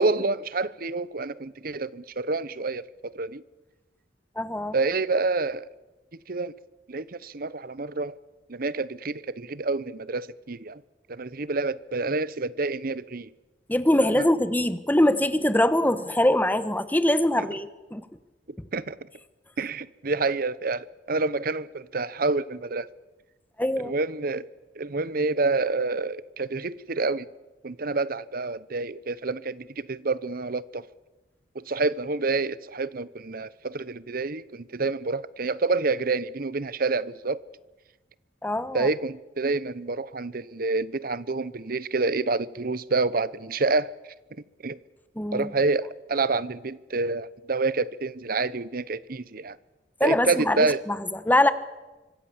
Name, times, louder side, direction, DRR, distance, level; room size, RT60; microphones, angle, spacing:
voice 1, 0.0-3.4 4.7-5.7 6.3-6.5 6.9-8.2 8.5-10.8 11.1-13.3 14.2-14.3 18.7-19.0 19.6-22.9 23.8-24.5 24.8-27.3 27.6-30.9 31.5-37.4 38.7-43.9 44.6-44.8 45.3-49.6 50.0-50.8, right 3 dB, 55° right, 0.9 m, -28 dB
voice 2, 4.4-4.8 13.7-18.0 23.6-23.9 38.4-38.9 45.2-45.5 50.0-51.5, left 1 dB, 10° left, 1.3 m, -23 dB
25.5 x 24.5 x 7.3 m
head